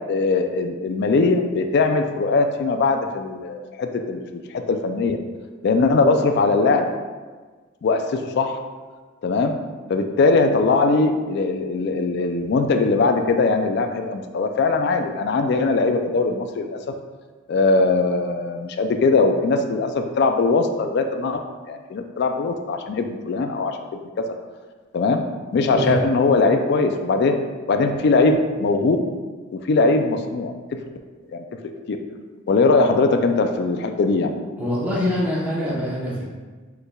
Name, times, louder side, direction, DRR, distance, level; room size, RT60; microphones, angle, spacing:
voice 1, 0.1-5.2 5.6-6.8 7.8-8.5 9.2-9.6 9.9-16.8 17.5-21.4 21.7-23.8 24.2-24.3 24.9-25.2 25.5-27.4 27.7-29.0 29.5-30.5 31.3-31.4 31.9-32.0 32.5-34.3, left 3 dB, 55° left, 6 dB, 0.3 m, -20 dB
voice 2, 34.6-36.2, left 1 dB, 10° right, -8 dB, 0.8 m, -24 dB
6.4 x 3.3 x 2.3 m, 1.4 s
head